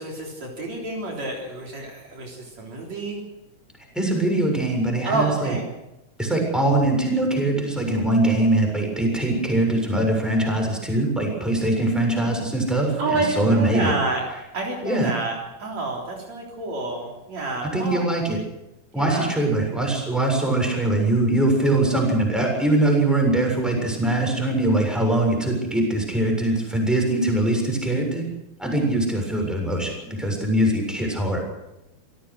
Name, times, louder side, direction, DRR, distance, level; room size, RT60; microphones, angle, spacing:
voice 1, 0.0-3.2 5.0-5.6 13.0-18.0 19.0-19.3, right 3 dB, 65° right, -1 dB, 4.9 m, -29 dB
voice 2, 3.9-5.5 6.2-13.9 14.8-15.1 17.7-18.4 18.9-28.2 28.6-31.4, right 1 dB, ahead, 1 dB, 6.9 m, -22 dB
26.0 x 18.0 x 6.4 m, 0.95 s
omnidirectional pair, 3.3 m